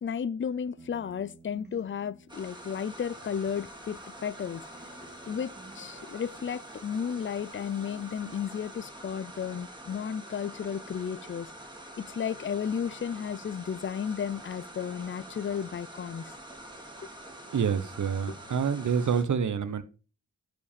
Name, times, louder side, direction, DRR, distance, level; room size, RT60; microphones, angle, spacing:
voice 1, 0.0-4.6 5.3-11.5 12.0-16.3, left 7 dB, 40° left, 0.5 m, -33 dB
sound 1, 0.8-4.4 4.7-7.5 7.8-8.8, right 2 dB, 35° right, 4.0 m, -55 dB
sound 2, 2.3-19.2, right 1 dB, 15° right, 2.7 m, -46 dB
voice 2, 17.5-19.8, right 7 dB, 65° right, 1.0 m, -27 dB
10.5 x 5.1 x 5.1 m
cardioid pair, 75°, 32 cm